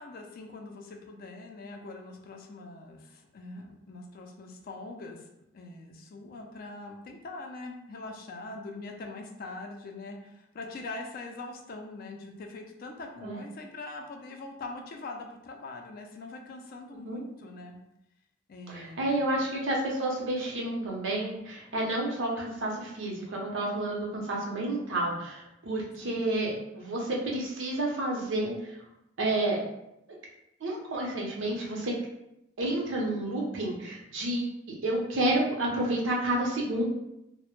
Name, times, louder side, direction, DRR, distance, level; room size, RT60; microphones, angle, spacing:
voice 1, 0.0-5.3 5.5-17.8 18.5-19.4 26.0-26.2, left 2 dB, 50° left, 3 dB, 0.4 m, -43 dB
voice 2, 18.7-28.8 29.2-29.6 30.6-31.9 32.6-36.8, right 1 dB, 80° right, -2 dB, 0.6 m, -30 dB
2.0 x 2.0 x 2.9 m, 0.83 s
head